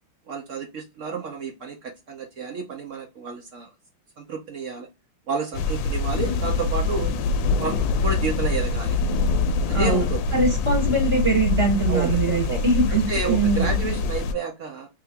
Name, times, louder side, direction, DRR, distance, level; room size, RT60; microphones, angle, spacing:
voice 1, 0.3-3.7 4.2-4.9 5.3-7.1 7.5-9.0 9.7-10.2 11.9-14.9, right 5 dB, 65° right, 3 dB, 0.7 m, -30 dB
sound 1, 5.5-14.3, left 3 dB, 80° left, 1.3 m, -24 dB
voice 2, 9.7-13.8, right 3 dB, 35° right, -2 dB, 1.2 m, -23 dB
3.3 x 2.9 x 3.4 m, 0.24 s
omnidirectional pair, 2.1 m